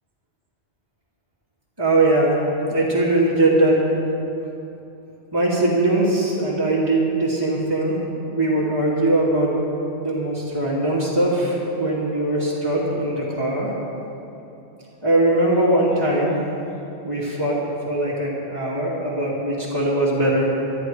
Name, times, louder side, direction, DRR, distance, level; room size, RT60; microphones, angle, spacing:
voice 1, 1.8-2.3 2.7-3.8 5.3-7.9 8.3-9.5 10.0-13.7 15.0-16.4 17.0-17.6 17.9-20.5, right 1 dB, 20° right, -10 dB, 2.3 m, -20 dB
26.0 x 11.0 x 3.2 m, 2.9 s
omnidirectional pair, 1.2 m